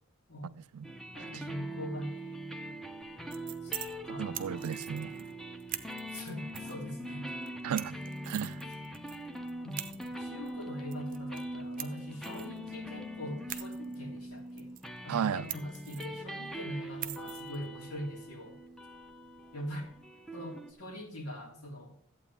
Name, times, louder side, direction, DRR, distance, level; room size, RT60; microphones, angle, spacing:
voice 1, 0.4-0.9 1.3-1.4 4.2-5.3 7.6-7.9 8.3-8.6 15.1-15.5, right 8 dB, 80° right, 0.3 m, -34 dB
sound 1, 0.8-20.7, right 1 dB, ahead, 0.7 m, -42 dB
voice 2, 1.1-2.5 3.6-3.7 4.0-4.8 6.1-7.3 7.9-8.0 9.6-14.7 15.0-18.6 19.5-19.9 20.3-21.9, equal, 85° left, 3.1 m, -42 dB
sound 2, 3.0-19.9, right 12 dB, 40° right, 0.7 m, -47 dB
14.0 x 8.4 x 3.6 m
head